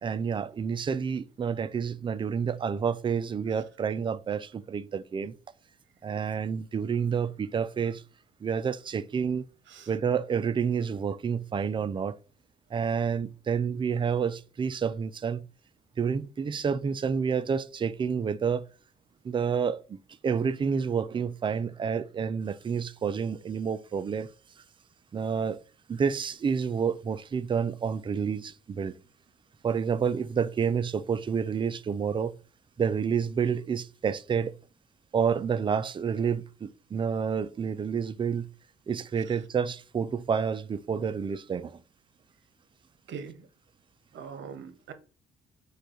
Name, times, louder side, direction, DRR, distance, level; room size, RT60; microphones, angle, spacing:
voice 1, 0.0-5.3 6.0-8.0 8.4-9.4 9.9-12.2 12.7-15.4 16.0-18.7 19.2-20.0 20.2-24.3 25.1-25.6 25.9-28.9 29.6-32.4 32.8-34.5 35.1-38.5 38.9-41.8, right 6 dB, 25° right, 0.3 m, -29 dB
voice 2, 43.1-43.5 44.1-44.9, right 6 dB, 70° right, 0.9 m, -42 dB
5.1 x 2.3 x 4.3 m
cardioid pair, 90°, 20 cm